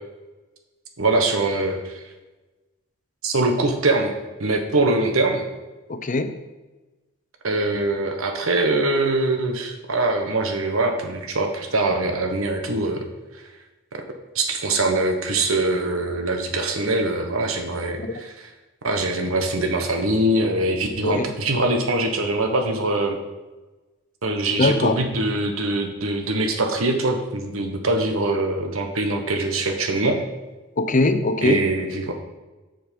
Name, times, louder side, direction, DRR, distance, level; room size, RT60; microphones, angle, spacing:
voice 1, 1.0-2.0 3.2-4.1 4.4-5.4 7.4-13.1 14.3-18.3 18.8-23.2 24.2-30.2 31.4-32.1, right 2 dB, 90° right, 4 dB, 1.2 m, -23 dB
voice 2, 5.9-6.3 18.0-18.2 21.0-21.3 24.6-25.0 30.8-31.7, left 2 dB, 40° left, 9 dB, 0.6 m, -21 dB
7.6 x 6.5 x 5.3 m, 1.2 s
head